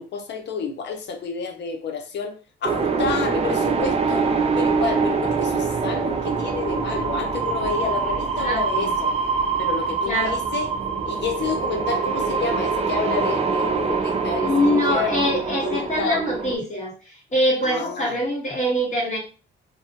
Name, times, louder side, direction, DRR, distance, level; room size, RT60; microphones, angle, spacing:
voice 1, 0.0-4.3 4.6-9.1 9.6-10.7 11.1-15.1 15.6-16.2 17.6-18.2, left 5 dB, 60° left, 0.7 m, -30 dB
sound 1, 2.6-16.5, right 5 dB, 30° right, 0.4 m, -24 dB
voice 2, 8.4-8.9 10.1-10.4 14.4-19.2, equal, 35° left, 1.5 m, -24 dB
2.6 x 2.1 x 2.8 m
cardioid pair, 90°, 20 cm